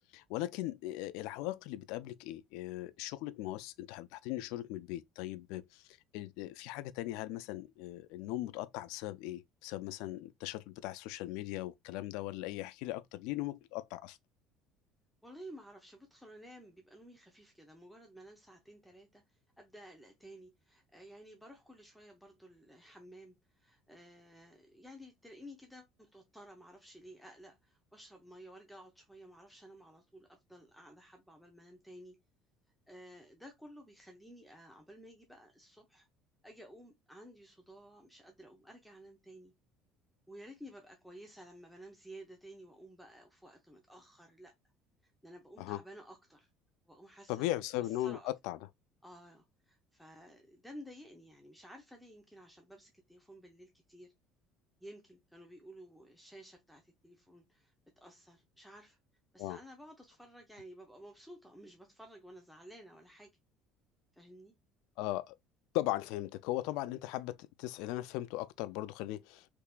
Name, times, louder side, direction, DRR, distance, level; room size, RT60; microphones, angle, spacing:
voice 1, 0.1-5.8 6.1-14.2 45.6-45.8 47.3-48.6 59.4-59.6 65.0-65.3 65.7-69.5, left 15 dB, 80° left, 0.3 m, -38 dB
voice 2, 15.2-32.2 32.9-36.1 36.4-39.5 40.3-44.5 45.0-46.5 46.9-48.3 49.0-54.1 54.8-59.0 59.3-63.3 64.1-64.5, equal, ahead, 0.7 m, -54 dB
3.5 x 2.8 x 2.4 m
cardioid pair, 135°, 0 cm